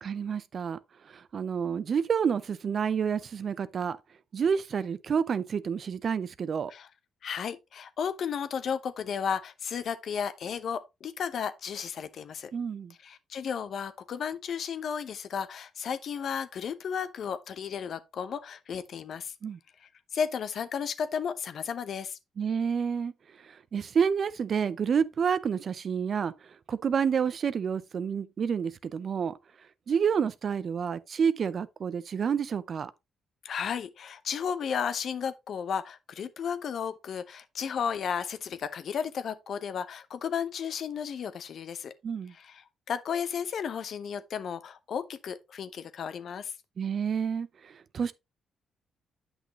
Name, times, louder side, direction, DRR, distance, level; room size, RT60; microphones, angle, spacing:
voice 1, 0.0-0.8 1.1-4.0 4.3-6.7 12.5-12.9 19.4-19.6 22.4-23.1 23.7-26.3 26.7-29.4 29.9-32.9 42.0-42.3 46.8-48.1, right 7 dB, 55° right, 0.6 m, -29 dB
voice 2, 7.2-12.5 13.0-19.3 19.8-22.2 33.4-41.9 42.3-46.5, left 7 dB, 60° left, 0.8 m, -34 dB
8.1 x 6.1 x 2.9 m
supercardioid pair, 70°, 0 cm